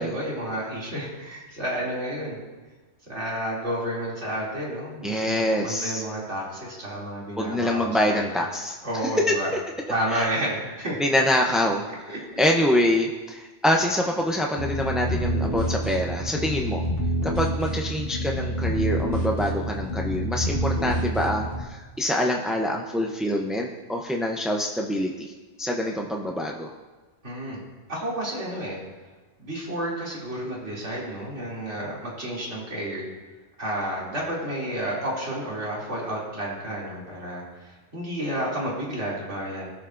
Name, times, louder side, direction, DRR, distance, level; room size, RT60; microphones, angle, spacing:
voice 1, 0.0-2.4 3.1-8.3 8.8-9.5 9.9-11.0 12.1-12.2 27.2-27.6 27.9-28.8 29.4-33.0 33.6-39.7, right 1 dB, 85° right, -5 dB, 3.0 m, -31 dB
voice 2, 5.0-6.0 7.4-9.4 10.1-10.3 11.0-11.9 12.4-16.9 17.2-25.3 25.6-26.7, left 1 dB, ahead, 0 dB, 0.3 m, -25 dB
sound 1, 14.6-21.6, right 1 dB, 55° left, 1.7 m, -27 dB
18.0 x 7.0 x 2.5 m, 1.3 s
omnidirectional pair, 1.2 m